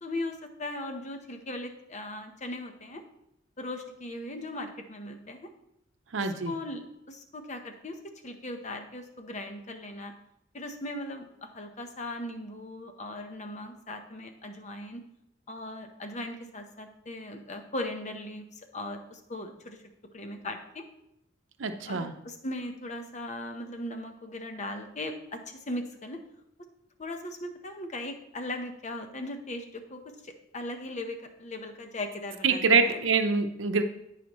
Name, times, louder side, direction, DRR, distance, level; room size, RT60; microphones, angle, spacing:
voice 1, 0.0-3.0 3.6-5.5 6.2-10.1 10.5-15.0 15.5-18.4 18.7-19.8 20.1-20.8 21.8-26.2 27.0-33.0, left 1 dB, 40° left, 5 dB, 0.9 m, -38 dB
voice 2, 6.1-6.5 21.6-22.1 32.4-33.8, right 4 dB, 80° right, 7 dB, 0.7 m, -25 dB
13.5 x 5.0 x 3.1 m, 0.82 s
head